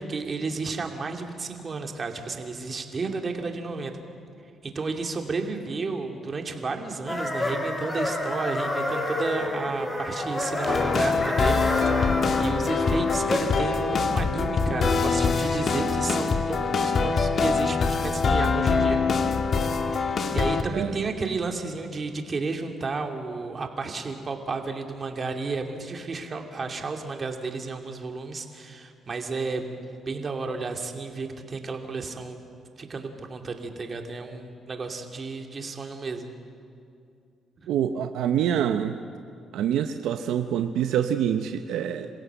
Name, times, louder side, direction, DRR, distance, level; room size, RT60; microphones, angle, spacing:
voice 1, 0.0-3.9 4.6-11.9 12.4-19.0 19.9-32.5 32.8-36.3 37.6-37.7, right 4 dB, 40° right, 4 dB, 2.5 m, -32 dB
sound 1, 7.1-13.6, left 1 dB, 20° left, 4.6 m, -29 dB
sound 2, 10.7-20.6, left 4 dB, 50° left, 1.6 m, -24 dB
voice 2, 37.7-39.0 39.5-42.1, right 9 dB, 85° right, 8 dB, 0.8 m, -26 dB
27.0 x 16.0 x 8.0 m, 2.4 s
cardioid pair, 90°, 0 cm